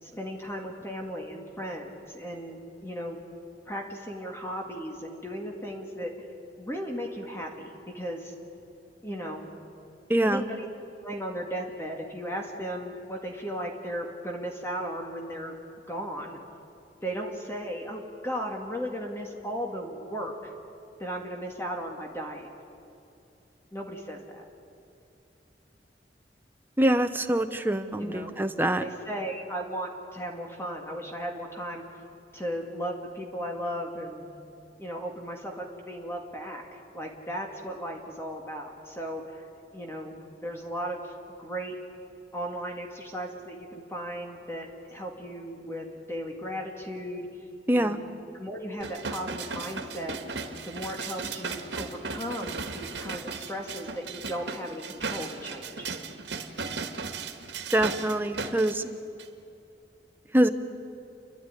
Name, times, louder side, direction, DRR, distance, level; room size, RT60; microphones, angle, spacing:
voice 1, 0.0-3.2 3.7-6.1 6.6-8.3 9.0-9.5 10.2-10.7 11.0-15.6 15.9-16.4 17.0-20.5 21.0-22.5 23.7-24.4 28.0-28.3 28.8-31.8 32.3-34.2 34.8-39.4 39.7-41.8 42.3-47.3 47.7-48.0 48.3-50.2 50.6-55.9, equal, 15° left, 1 dB, 2.0 m, -36 dB
voice 2, 10.1-10.4 26.8-28.8 47.7-48.0 57.7-58.9 60.3-60.5, right 1 dB, 10° right, 7 dB, 0.9 m, -24 dB
sound 1, 48.8-58.7 59.2-59.3, right 4 dB, 85° right, 1.7 m, -36 dB
29.5 x 11.5 x 9.9 m, 2.7 s
head